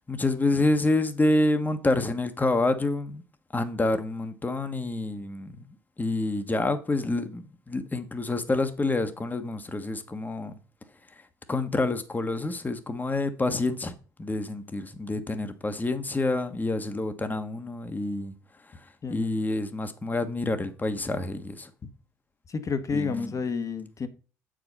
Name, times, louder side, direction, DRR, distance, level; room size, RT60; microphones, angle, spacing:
voice 1, 0.0-3.2 3.5-5.6 6.0-10.5 11.5-18.3 19.1-21.7 22.9-23.4, left 2 dB, 20° left, 1.4 m, -28 dB
voice 2, 22.5-24.1, left 5 dB, 40° left, 1.4 m, -30 dB
8.4 x 5.2 x 5.4 m
hypercardioid pair, 50°, 9 cm